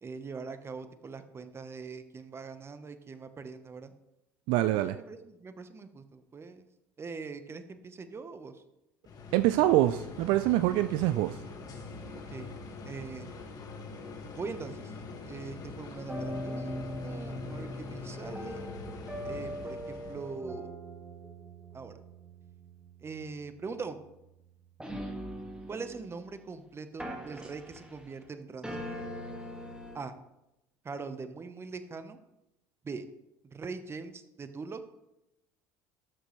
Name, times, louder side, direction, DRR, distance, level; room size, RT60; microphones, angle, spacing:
voice 1, 0.0-3.9 4.8-6.7 7.0-8.6 12.1-12.5 12.8-13.3 14.4-14.9 15.3-18.6 19.2-20.7 21.7-22.0 23.0-24.0 25.7-28.8 29.9-30.1 30.8-32.2 32.8-33.0 33.5-34.8, right 4 dB, 25° right, 10 dB, 1.0 m, -42 dB
voice 2, 4.5-5.0 9.3-11.4, right 15 dB, 65° right, 11 dB, 0.4 m, -25 dB
sound 1, 9.0-20.4, left 3 dB, 45° left, 1.7 m, -44 dB
sound 2, 16.1-26.6 27.0-28.3 28.6-30.1, equal, 10° right, 1.8 m, -41 dB
12.5 x 6.5 x 3.2 m, 0.90 s
hypercardioid pair, 75°, 9 cm